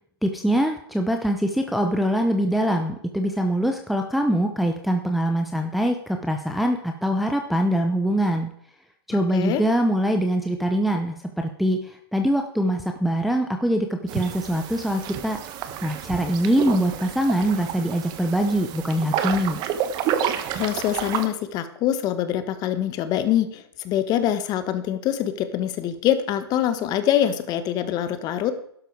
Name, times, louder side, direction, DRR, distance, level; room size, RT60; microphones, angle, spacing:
voice 1, 0.2-8.5 9.1-15.4 15.8-19.6, equal, ahead, 3 dB, 0.8 m, -23 dB
sound 1, 14.1-21.3, right 9 dB, 30° right, 1.2 m, -30 dB
voice 2, 20.6-28.5, left 11 dB, 30° left, 10 dB, 1.4 m, -24 dB
11.5 x 11.5 x 4.7 m, 0.68 s
hypercardioid pair, 135°, 14 cm